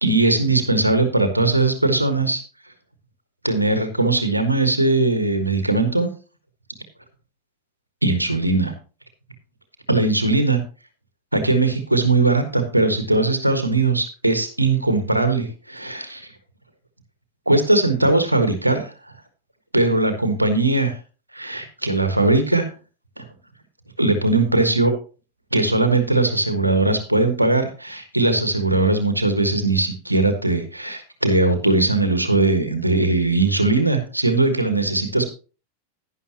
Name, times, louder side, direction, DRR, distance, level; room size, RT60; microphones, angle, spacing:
voice 1, 0.0-2.4 3.4-6.1 8.0-8.7 9.9-10.6 11.3-16.3 17.5-18.9 19.7-21.0 21.3-22.7 23.2-23.3 24.0-24.9 25.5-35.3, right 2 dB, 85° right, 8 dB, 1.4 m, -19 dB
11.0 x 10.5 x 3.0 m, 0.35 s
figure-of-eight pair, 90°, 0 cm